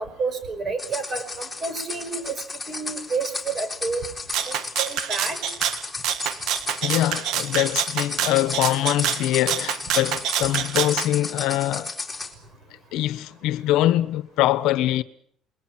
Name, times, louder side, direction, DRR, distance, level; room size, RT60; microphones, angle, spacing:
voice 1, 0.0-4.1 4.5-5.4 10.4-10.5, right 4 dB, 35° right, 5.2 m, -30 dB
sound 1, 0.8-12.3, left 3 dB, 10° left, 3.9 m, -34 dB
Rattle (instrument), 4.3-11.1, right 10 dB, 70° right, 1.9 m, -27 dB
voice 2, 6.8-11.9 12.9-15.0, left 14 dB, 75° left, 1.1 m, -23 dB
28.5 x 22.0 x 6.0 m
cardioid pair, 145°, 0 cm